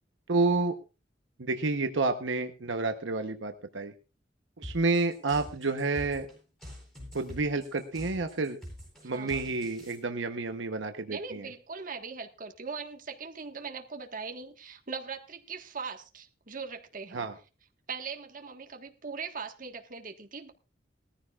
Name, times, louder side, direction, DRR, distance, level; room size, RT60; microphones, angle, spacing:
voice 1, 0.3-0.8 1.4-3.9 4.6-6.3 7.1-8.6 9.0-11.5 17.1-17.3, right 3 dB, 85° right, 7 dB, 1.0 m, -29 dB
sound 1, 4.6-10.0, equal, 5° left, 8.0 m, -45 dB
voice 2, 9.0-9.4 11.1-17.3 17.9-20.5, right 5 dB, 45° right, 4 dB, 1.5 m, -40 dB
20.0 x 14.5 x 2.4 m, 0.31 s
head